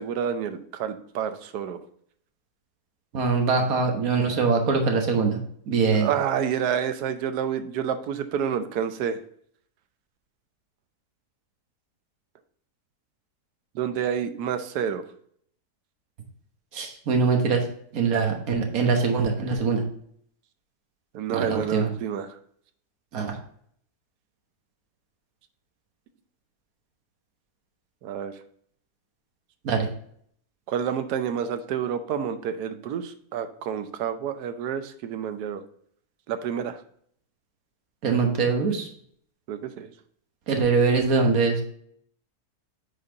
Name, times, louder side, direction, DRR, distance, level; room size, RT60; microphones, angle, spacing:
voice 1, 0.0-1.8 5.9-9.2 13.7-15.0 21.1-22.4 28.0-28.3 30.7-35.6 36.3-36.8 39.5-39.9, right 8 dB, 80° right, 9 dB, 1.2 m, -29 dB
voice 2, 3.1-5.4 5.7-6.1 16.7-17.6 17.9-19.8 21.3-21.9 23.1-23.3 29.6-29.9 38.0-38.9 40.5-41.6, right 4 dB, 65° right, 3 dB, 1.6 m, -23 dB
8.5 x 4.2 x 3.8 m, 0.63 s
omnidirectional pair, 1.7 m